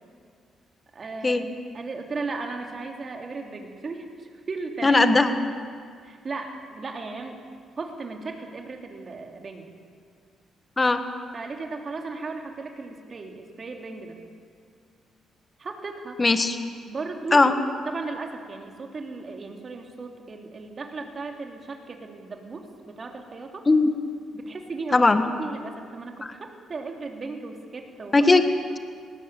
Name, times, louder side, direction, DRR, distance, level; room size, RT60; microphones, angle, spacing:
voice 1, 0.9-1.4 1.7-4.1 4.5-5.0 6.0-7.4 7.8-9.7 11.3-14.2 15.6-16.2 16.8-17.5 17.8-23.7 24.3-25.1 25.4-28.4, right 3 dB, 40° right, 3 dB, 3.2 m, -36 dB
voice 2, 4.8-5.3 10.8-11.0 16.2-16.6 17.3-17.5 23.6-23.9 24.9-25.2 26.2-26.3 28.1-28.4, left 3 dB, 25° left, 8 dB, 1.7 m, -18 dB
19.0 x 18.5 x 8.5 m, 2.1 s
cardioid pair, 90°, 0 cm